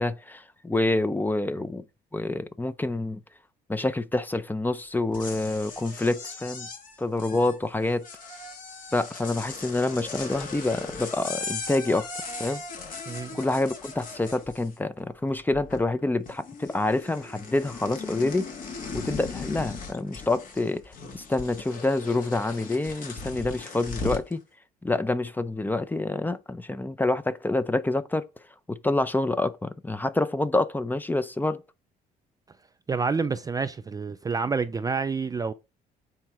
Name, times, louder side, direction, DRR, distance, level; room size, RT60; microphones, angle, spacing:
voice 1, 0.0-1.8 2.1-3.2 3.7-6.7 7.0-8.1 8.9-12.1 12.4-12.6 13.3-18.5 18.9-24.4 24.8-28.3 28.7-31.6, left 2 dB, 10° left, 0.7 m, -27 dB
sound 1, 5.0-15.0 15.3-16.0 16.3-24.3, left 4 dB, 55° left, 2.6 m, -38 dB
voice 2, 13.1-13.4 32.9-35.5, right 5 dB, 20° right, 0.4 m, -28 dB
8.8 x 4.4 x 4.8 m
cardioid pair, 110°, 17 cm